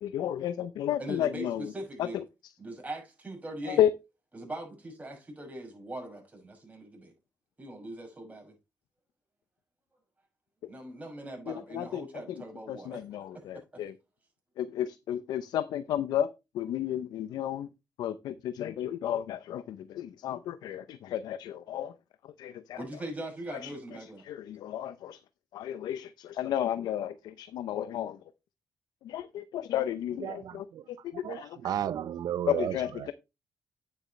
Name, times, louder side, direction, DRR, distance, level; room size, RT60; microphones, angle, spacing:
voice 1, 0.0-1.7 3.7-3.9 11.5-12.0 12.7-13.9 14.6-16.3 16.5-17.7 18.0-21.9 22.4-22.8 23.5-23.7 24.2-25.2 25.5-28.2 29.0-30.6 31.0-31.5 32.5-33.1, left 11 dB, 90° left, 0.6 m, -32 dB
voice 2, 1.0-2.2 2.6-3.8 4.3-7.1 7.6-8.5 10.7-13.0 13.3-13.4 22.8-24.2, right 1 dB, 20° right, 6.2 m, -41 dB
voice 3, 30.2-33.1, right 10 dB, 75° right, 0.8 m, -34 dB
9.3 x 7.9 x 3.2 m
cardioid pair, 85°, 7 cm